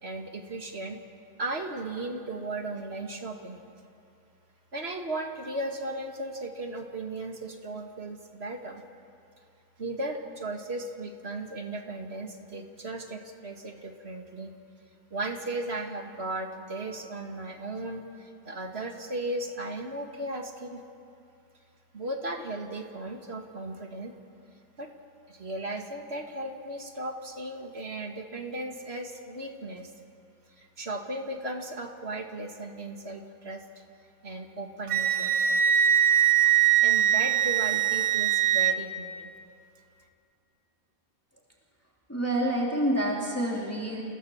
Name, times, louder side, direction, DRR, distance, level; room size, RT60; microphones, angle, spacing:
voice 1, 0.0-1.0 1.4-3.6 4.7-8.8 9.8-14.5 15.1-20.8 21.9-24.2 24.8-24.9 25.3-29.9 30.6-33.6 34.2-35.6 36.8-39.3, right 2 dB, 50° right, 3 dB, 2.2 m, -36 dB
Wind instrument woodwind instrument, 34.9-38.8, right 10 dB, 80° right, 1.3 m, -22 dB
voice 2, 42.1-44.0, right 1 dB, 10° left, -3 dB, 3.1 m, -27 dB
29.5 x 17.0 x 7.2 m, 2.6 s
omnidirectional pair, 1.4 m